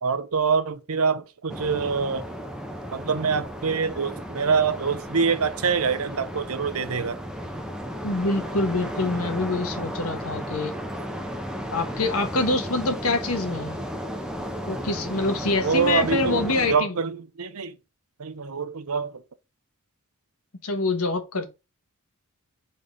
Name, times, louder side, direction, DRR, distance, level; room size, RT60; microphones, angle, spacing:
voice 1, 0.0-2.2 2.9-7.2 15.6-17.8 18.2-19.2, right 5 dB, 75° right, 0.8 m, -25 dB
sound 1, 1.5-16.8, equal, 5° right, 0.8 m, -34 dB
voice 2, 8.0-10.7 11.7-13.8 14.7-16.9 20.6-21.5, left 2 dB, 75° left, 1.4 m, -25 dB
5.2 x 4.2 x 5.2 m
head